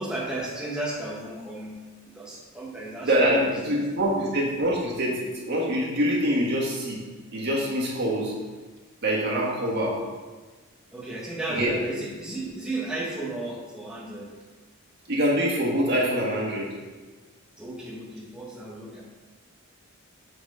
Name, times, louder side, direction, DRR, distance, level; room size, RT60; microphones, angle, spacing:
voice 1, 0.0-3.8 9.7-9.9 10.9-14.3 17.6-19.0, right 2 dB, 5° right, -5 dB, 0.9 m, -34 dB
voice 2, 3.0-7.0 7.3-8.3 9.0-10.0 11.5-11.7 15.1-16.7, equal, 50° right, -4 dB, 1.6 m, -25 dB
7.8 x 4.0 x 5.0 m, 1.3 s
head